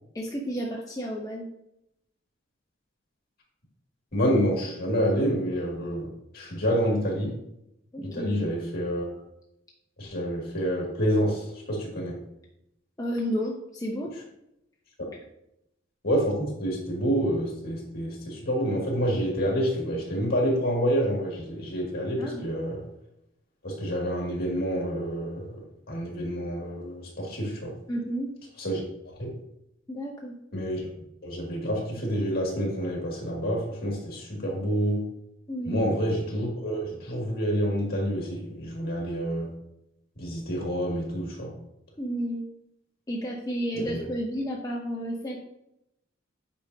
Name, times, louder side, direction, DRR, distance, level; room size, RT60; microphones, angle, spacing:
voice 1, 0.1-1.5 7.9-8.5 13.0-14.2 22.2-22.4 27.9-28.3 29.9-30.3 35.5-35.9 42.0-42.4 43.1-45.4, equal, 20° left, -2 dB, 0.6 m, -31 dB
voice 2, 4.1-7.3 8.0-9.0 10.0-12.2 16.0-22.8 23.6-25.5 25.9-27.7 28.6-28.8 29.2-29.3 30.5-30.9 31.2-35.0 35.6-39.5 40.2-41.5 43.7-44.1, equal, 50° left, -1 dB, 2.1 m, -28 dB
8.6 x 5.1 x 2.7 m, 0.82 s
head